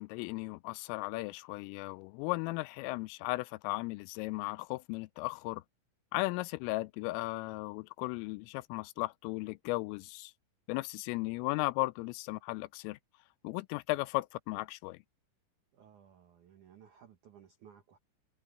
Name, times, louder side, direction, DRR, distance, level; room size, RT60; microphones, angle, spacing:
voice 1, 0.0-5.6 6.1-10.3 10.7-13.0 13.4-15.0, left 22 dB, 85° left, 3.1 m, -36 dB
voice 2, 15.7-18.0, right 8 dB, 75° right, 1.8 m, -58 dB
omnidirectional pair, 5.9 m